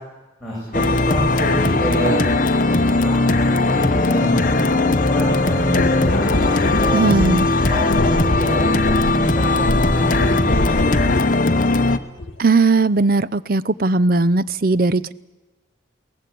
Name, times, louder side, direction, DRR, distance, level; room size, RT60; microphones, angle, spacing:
voice 1, 0.4-2.1 3.0-7.2 7.7-11.0, equal, ahead, -7 dB, 7.6 m, -28 dB
sound 1, 0.7-12.0, left 2 dB, 45° left, 1.0 m, -18 dB
sound 2, 5.8-11.3 12.2-12.4, left 1 dB, 75° left, 1.2 m, -24 dB
voice 2, 6.9-7.5 12.4-15.1, right 3 dB, 45° right, 17 dB, 0.6 m, -18 dB
23.0 x 17.5 x 8.4 m, 1.2 s
head